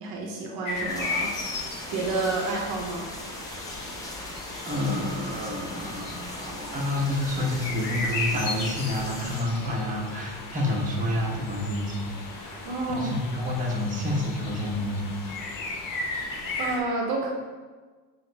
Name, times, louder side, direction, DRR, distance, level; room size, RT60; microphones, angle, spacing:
voice 1, 0.0-1.6 1.9-3.1 12.7-13.2 16.6-17.3, right 3 dB, 55° right, 0 dB, 0.8 m, -29 dB
sound 1, 0.7-16.8, left 3 dB, 45° left, 0.8 m, -36 dB
sound 2, 0.9-9.4, left 1 dB, 10° left, 0.7 m, -40 dB
voice 2, 4.7-15.5, left 1 dB, 15° right, -2 dB, 0.9 m, -29 dB
5.7 x 2.1 x 3.3 m, 1.4 s
supercardioid pair, 85°, 45 cm